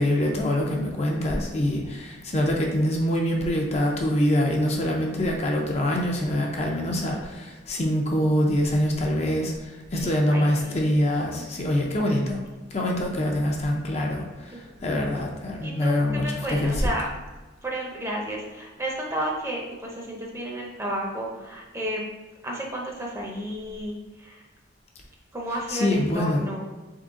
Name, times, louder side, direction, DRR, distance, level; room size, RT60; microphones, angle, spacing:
voice 1, 0.0-12.4 12.7-16.9 25.7-26.4, left 1 dB, 35° left, 0 dB, 0.5 m, -25 dB
voice 2, 10.0-10.7 14.5-15.0 15.6-17.1 17.6-22.1 22.4-24.4 25.3-26.6, right 1 dB, 15° right, -2 dB, 0.6 m, -32 dB
3.8 x 3.6 x 3.6 m, 1.2 s
head